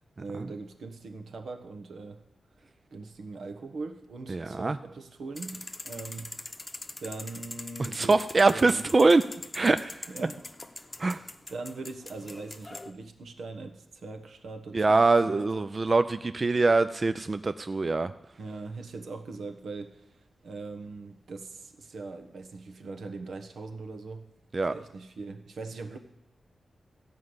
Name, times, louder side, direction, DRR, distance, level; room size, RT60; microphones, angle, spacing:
voice 1, 0.2-2.2 2.9-6.4 7.0-8.1 8.5-8.8 10.1-10.5 10.9-11.0 11.5-15.5 18.4-20.1 20.4-24.3 24.7-26.0, right 3 dB, 80° right, 5 dB, 1.2 m, -41 dB
voice 2, 4.3-4.8 7.8-9.2 9.5-10.1 11.0-11.2 14.7-18.1 24.5-24.7, right 3 dB, 35° right, 11 dB, 0.4 m, -23 dB
sound 1, 5.4-12.9, left 2 dB, 25° left, 0.8 m, -43 dB
15.0 x 5.3 x 9.6 m, 0.90 s
wide cardioid pair, 110°, 0 cm